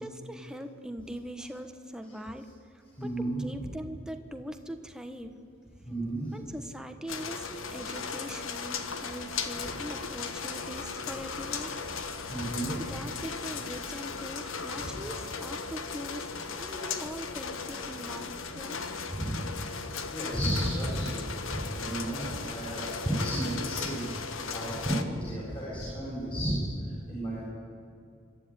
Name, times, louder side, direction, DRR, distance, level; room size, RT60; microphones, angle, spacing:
voice 1, 0.0-2.5 2.7-5.3 6.3-11.8 12.7-16.3 16.6-18.9, equal, 5° right, 6 dB, 1.2 m, -42 dB
voice 2, 2.9-3.4 5.9-6.3 12.3-12.7 14.8-14.9 19.1-19.4 20.1-27.4, right 1 dB, 25° left, -7 dB, 7.4 m, -33 dB
sound 1, 7.1-25.0, left 5 dB, 75° left, 1.4 m, -37 dB
26.0 x 12.5 x 9.8 m, 2.5 s
head